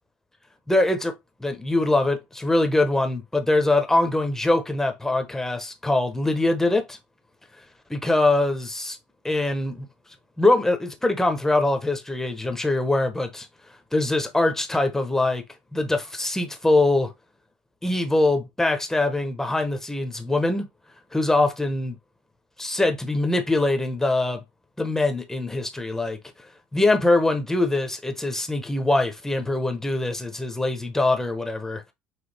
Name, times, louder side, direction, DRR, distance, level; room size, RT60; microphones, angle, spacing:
voice 1, 0.7-1.1 1.4-7.0 7.9-9.0 9.2-9.9 10.4-13.5 13.9-15.4 15.7-17.1 17.8-20.7 21.1-22.0 22.6-24.4 24.8-26.2 26.7-31.9, left 2 dB, 10° left, 1.1 m, -23 dB
6.2 x 2.3 x 3.4 m
supercardioid pair, 90°, 5 cm